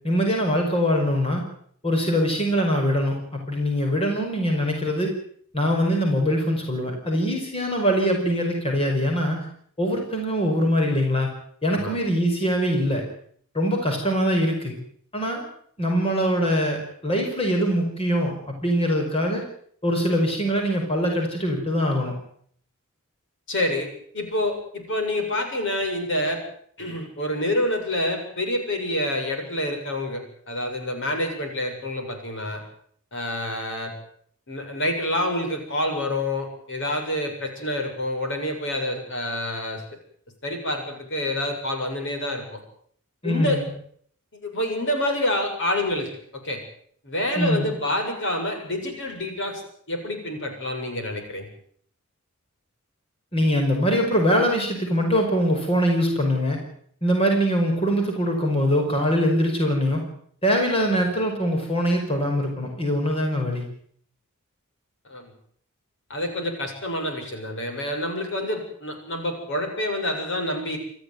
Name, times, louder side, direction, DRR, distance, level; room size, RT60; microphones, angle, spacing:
voice 1, 0.0-1.4 1.8-5.1 5.5-9.5 9.8-11.3 11.6-13.0 13.5-14.8 15.1-15.5 15.8-19.4 19.8-22.2 43.2-43.6 47.3-47.7 53.3-56.6 57.0-60.0 60.4-63.7, equal, 25° left, 2 dB, 5.3 m, -23 dB
voice 2, 23.5-23.9 24.1-26.4 26.8-32.6 33.1-33.9 34.5-39.8 40.4-42.6 43.2-43.6 44.4-46.1 46.4-46.6 47.0-49.6 49.9-51.5 65.1-65.3 66.1-70.8, left 1 dB, 60° left, 4 dB, 7.3 m, -27 dB
28.0 x 13.5 x 9.6 m, 0.63 s
head